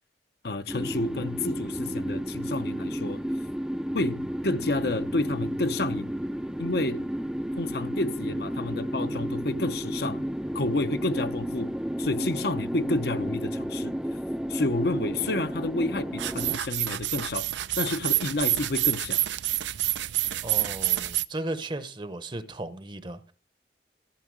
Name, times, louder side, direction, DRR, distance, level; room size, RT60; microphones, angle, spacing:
voice 1, 0.4-3.2 3.9-6.1 6.6-7.1 7.6-10.2 10.5-11.7 12.0-14.0 14.5-17.5 17.8-19.2, left 2 dB, 65° left, 0.8 m, -30 dB
sound 1, 0.7-16.6, equal, 5° right, 0.4 m, -32 dB
sound 2, 16.2-21.2, right 15 dB, 85° right, 0.5 m, -28 dB
voice 2, 20.4-23.3, right 1 dB, 25° right, 0.8 m, -35 dB
14.5 x 5.6 x 7.5 m
head